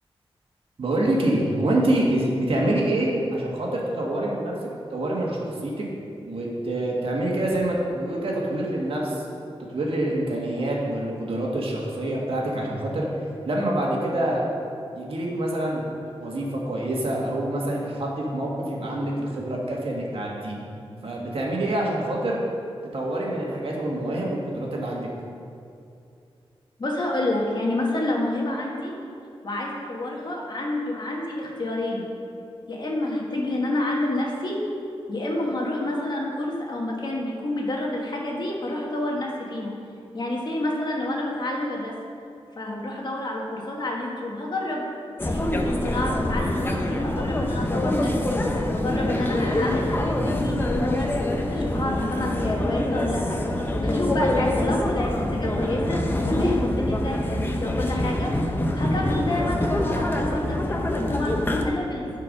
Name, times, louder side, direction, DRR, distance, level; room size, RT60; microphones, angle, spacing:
voice 1, 0.8-4.6 4.9-5.9 6.2-9.2 9.6-13.1 13.4-14.4 14.9-15.8 16.2-20.6 21.0-22.5 22.9-25.1, right 1 dB, 70° right, -3 dB, 1.6 m, -26 dB
voice 2, 26.8-28.9 29.4-32.1 32.7-34.6 35.1-39.7 40.1-41.9 42.6-44.8 45.2-58.3 58.7-62.1, left 1 dB, 50° left, -2 dB, 1.5 m, -29 dB
sound 1, 45.2-61.7, left 1 dB, 20° left, 0.7 m, -25 dB
10.5 x 4.7 x 5.3 m, 2.6 s
wide cardioid pair, 120°, 10 cm